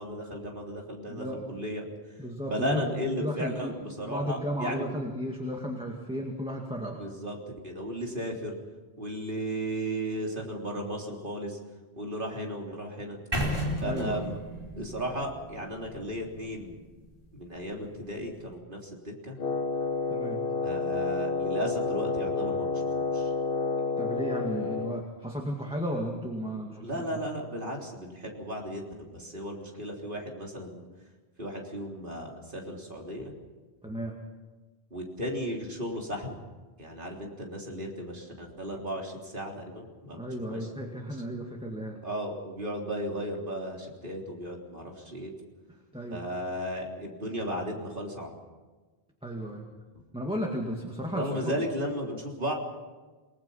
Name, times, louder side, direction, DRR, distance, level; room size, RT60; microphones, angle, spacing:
voice 1, 0.0-1.8 2.4-4.9 6.9-8.6 9.0-11.6 12.0-13.2 13.8-14.4 14.7-16.7 17.3-19.4 20.6-23.3 26.8-30.8 31.4-33.3 34.9-36.4 36.8-40.2 40.5-40.7 42.0-45.3 46.1-48.3 51.1-52.5, equal, 55° right, 0 dB, 3.8 m, -35 dB
voice 2, 1.1-1.5 2.2-3.7 4.1-7.0 13.8-14.2 20.1-20.4 24.0-27.2 33.8-34.2 40.1-42.0 45.9-46.2 49.2-49.7 50.1-51.6, equal, 5° right, 0 dB, 2.1 m, -34 dB
sound 1, 13.3-17.3, equal, 20° right, 5.0 m, -34 dB
Wind instrument woodwind instrument, 19.4-25.1, left 4 dB, 65° left, 1.1 m, -30 dB
28.5 x 19.0 x 5.7 m, 1.3 s
omnidirectional pair, 1.1 m